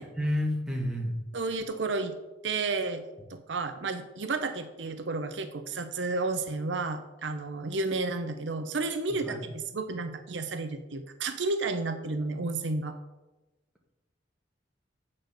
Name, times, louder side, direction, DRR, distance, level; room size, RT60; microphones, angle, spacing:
voice 1, 0.0-1.2 9.1-9.4, left 1 dB, 5° right, -1 dB, 1.5 m, -30 dB
voice 2, 1.3-2.1 2.4-3.0 3.3-13.0, right 3 dB, 75° right, 9 dB, 0.7 m, -32 dB
8.2 x 4.3 x 6.6 m, 1.0 s
head